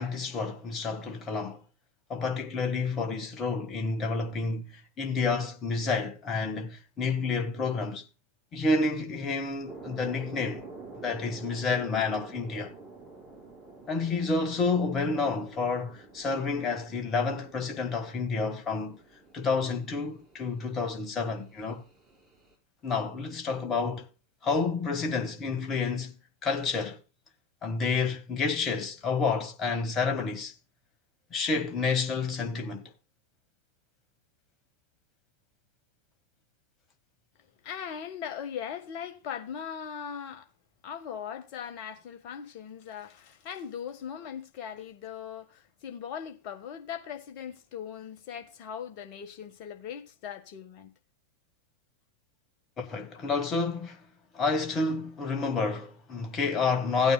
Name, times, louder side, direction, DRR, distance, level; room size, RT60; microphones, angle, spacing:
voice 1, 0.0-1.6 2.1-8.0 8.5-10.6 11.0-12.7 13.9-19.0 19.3-21.8 22.8-24.0 24.4-26.1 26.4-27.0 27.6-30.5 31.3-32.9 52.8-54.0 54.3-57.1, left 4 dB, 25° left, 1.7 m, -29 dB
sound 1, 9.7-22.5, right 3 dB, 10° right, 5.5 m, -49 dB
voice 2, 37.6-40.5 40.8-50.9, left 8 dB, 45° left, 1.5 m, -39 dB
16.5 x 9.0 x 2.3 m
figure-of-eight pair, 90°, 0 cm